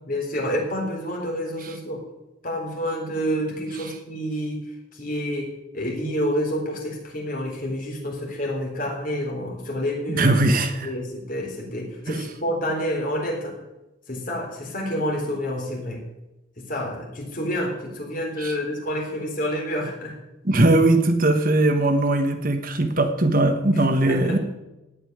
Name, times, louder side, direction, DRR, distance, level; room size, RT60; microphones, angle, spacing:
voice 1, 0.1-2.1 2.4-10.4 10.8-13.6 14.1-16.0 16.6-20.2 23.7-24.4, equal, 45° left, 0 dB, 4.0 m, -28 dB
voice 2, 10.1-10.9 18.4-18.5 20.4-24.4, right 2 dB, 45° right, 6 dB, 1.4 m, -20 dB
17.0 x 5.8 x 9.4 m, 0.97 s
head